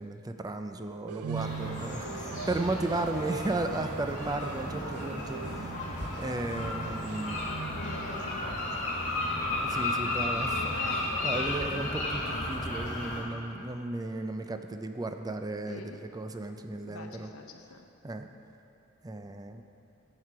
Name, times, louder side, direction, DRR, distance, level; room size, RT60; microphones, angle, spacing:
voice 1, 0.0-5.7 6.2-7.4 9.6-10.7 11.2-17.3 18.0-18.3 19.0-19.6, right 2 dB, 15° right, 7 dB, 0.5 m, -35 dB
sound 1, 1.1-11.3, right 6 dB, 85° right, 0.4 m, -43 dB
sound 2, 1.3-13.2, left 2 dB, 35° left, 2.1 m, -33 dB
voice 2, 7.7-9.0 10.3-13.0 15.7-16.0 16.8-17.9, left 3 dB, 70° left, 4 dB, 0.9 m, -45 dB
12.5 x 7.6 x 4.8 m, 2.9 s
head